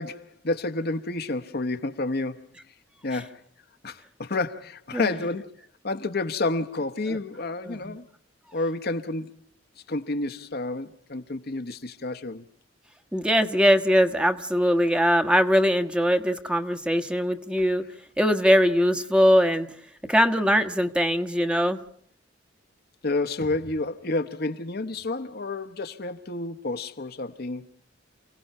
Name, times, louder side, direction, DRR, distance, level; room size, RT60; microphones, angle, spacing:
voice 1, 0.0-2.5 3.0-3.4 3.8-5.5 5.8-8.1 8.5-9.3 9.9-12.4 23.0-27.7, left 2 dB, 55° left, 1.1 m, -30 dB
voice 2, 7.6-8.0 13.1-17.8 18.2-19.7 20.1-21.8, equal, 5° right, 1.2 m, -21 dB
29.5 x 17.5 x 5.5 m
head